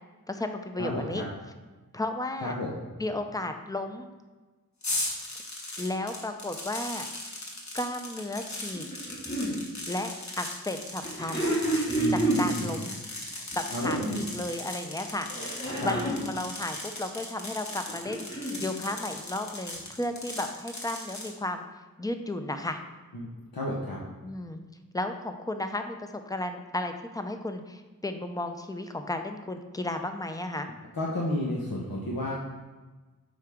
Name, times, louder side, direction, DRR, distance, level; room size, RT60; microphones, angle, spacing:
voice 1, 0.3-1.2 1.9-2.6 3.0-4.1 5.8-7.1 7.7-8.8 9.9-10.1 10.4-11.5 12.1-13.0 13.4-15.3 15.7-21.6 22.0-22.8 24.2-24.6 24.9-30.7, left 1 dB, 10° left, 6 dB, 0.6 m, -34 dB
voice 2, 0.8-1.3 2.4-2.7 11.9-12.8 13.7-14.0 15.8-15.9 23.1-23.3 23.5-24.0 30.9-32.3, left 1 dB, 75° left, -5 dB, 1.1 m, -31 dB
sound 1, 4.8-21.3, left 2 dB, 50° left, 1.3 m, -38 dB
sound 2, 8.7-9.5 11.0-12.5 13.5-14.3 15.3-16.3 17.7-18.6 19.8-19.9, right 1 dB, 30° left, 2.2 m, -29 dB
7.6 x 4.9 x 3.6 m, 1.2 s
wide cardioid pair, 65°, 35 cm